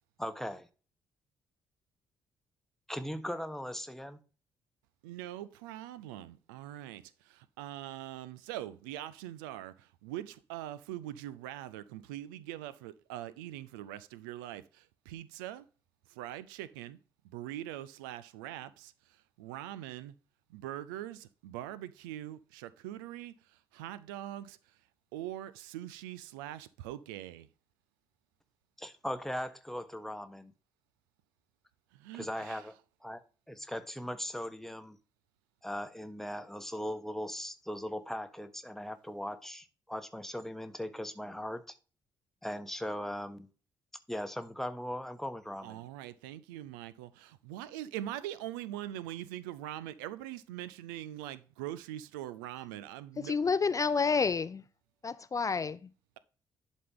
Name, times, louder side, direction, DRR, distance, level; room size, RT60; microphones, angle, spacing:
voice 1, 0.2-0.7 2.9-4.2 28.8-30.5 32.1-32.7 33.0-35.0 35.6-41.8 42.4-43.5 44.1-45.8, equal, 5° left, 1.2 m, -39 dB
voice 2, 5.0-15.6 16.2-17.0 17.2-18.9 19.4-20.1 20.5-23.3 23.7-24.6 25.1-27.5 31.9-32.6 45.6-53.3, right 13 dB, 80° right, 0.5 m, -42 dB
voice 3, 53.2-54.6 55.0-55.8, left 5 dB, 30° left, 0.4 m, -29 dB
11.0 x 4.2 x 3.6 m
hypercardioid pair, 45°, 11 cm